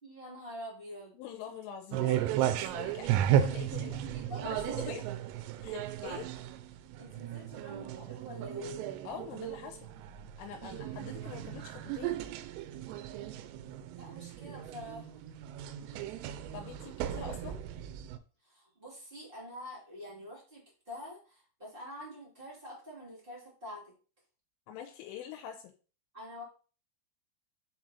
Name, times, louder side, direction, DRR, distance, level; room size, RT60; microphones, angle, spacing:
voice 1, 0.0-1.1 1.5-1.6 2.0-2.4 3.6-5.0 7.0-8.9 13.9-15.4 18.4-23.9 26.1-26.4, equal, 25° right, -7 dB, 1.2 m, -46 dB
voice 2, 1.1-4.0 4.4-5.1 5.6-6.3 9.0-9.9 10.4-12.2 16.5-17.6 24.7-25.7, left 9 dB, 80° left, 5 dB, 3.1 m, -45 dB
sound 1, 1.9-18.2, right 11 dB, 85° right, 3.2 m, -35 dB
6.7 x 4.7 x 4.0 m, 0.37 s
omnidirectional pair, 5.7 m